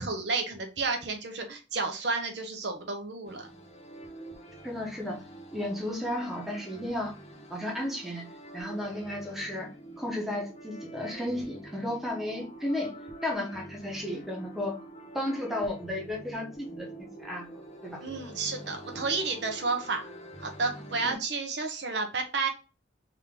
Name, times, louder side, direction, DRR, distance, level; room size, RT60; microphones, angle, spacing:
voice 1, 0.0-3.5 18.0-20.0 20.4-22.5, right 4 dB, 65° right, 4 dB, 0.8 m, -31 dB
sound 1, 3.3-21.1, right 1 dB, 35° left, 0.9 m, -46 dB
voice 2, 4.6-5.2 5.5-7.1 7.5-8.2 8.5-9.7 10.0-13.0 13.2-14.8 15.1-17.5 17.8-18.0 21.0-21.2, left 1 dB, ahead, -1 dB, 1.0 m, -33 dB
3.6 x 2.9 x 3.5 m, 0.32 s
head